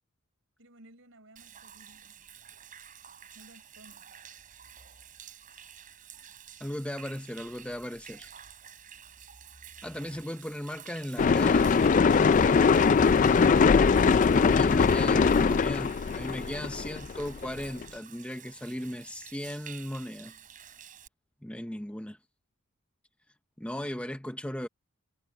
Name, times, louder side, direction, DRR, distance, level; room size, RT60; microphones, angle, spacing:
voice 1, 0.6-2.2 3.3-4.0, right 1 dB, 60° right, 4.7 m, -56 dB
Human voice / Rain / Stream, 1.4-21.1, right 8 dB, 35° right, 4.3 m, -50 dB
voice 2, 6.6-8.3 9.8-11.7 14.3-20.4 21.4-22.2 23.6-24.7, left 1 dB, 5° left, 0.7 m, -37 dB
sound 1, 11.2-17.8, left 5 dB, 35° left, 0.3 m, -22 dB
head